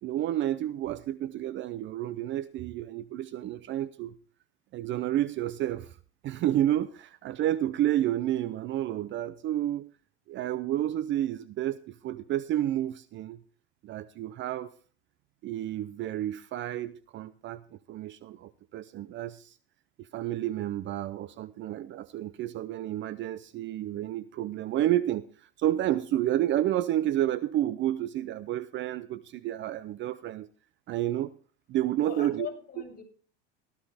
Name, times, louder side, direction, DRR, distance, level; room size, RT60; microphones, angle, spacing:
voice 1, 0.0-4.2 4.7-6.0 6.2-9.9 10.3-13.4 13.8-14.8 15.4-19.6 20.0-30.5 30.9-31.3 31.7-32.5, right 12 dB, 40° right, 0.6 m, -30 dB
voice 2, 32.0-33.0, left 7 dB, 30° left, 7.0 m, -40 dB
16.5 x 13.5 x 3.5 m
supercardioid pair, 110°, 31 cm